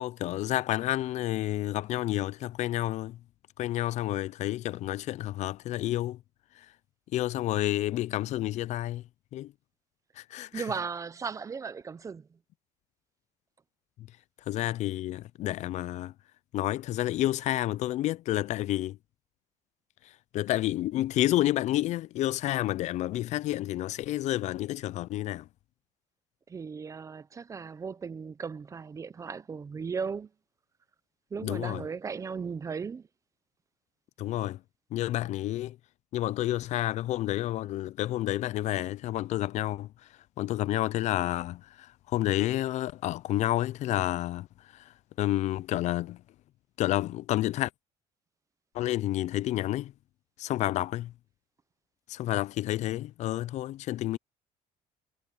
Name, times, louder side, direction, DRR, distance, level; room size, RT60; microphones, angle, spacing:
voice 1, 0.0-3.2 3.6-6.2 7.1-9.0 9.3-9.5 10.2-10.6 14.5-16.1 16.5-19.0 20.3-25.4 31.4-31.8 34.2-34.6 34.9-35.8 36.1-39.9 40.4-41.9 42.1-44.5 45.2-46.2 46.8-47.7 48.7-49.9 50.4-51.1 52.1-54.2, left 15 dB, 60° left, 0.4 m, -29 dB
voice 2, 10.5-12.3 26.5-30.3 31.3-33.1, right 5 dB, 25° right, 0.5 m, -36 dB
cardioid pair, 140°, 14 cm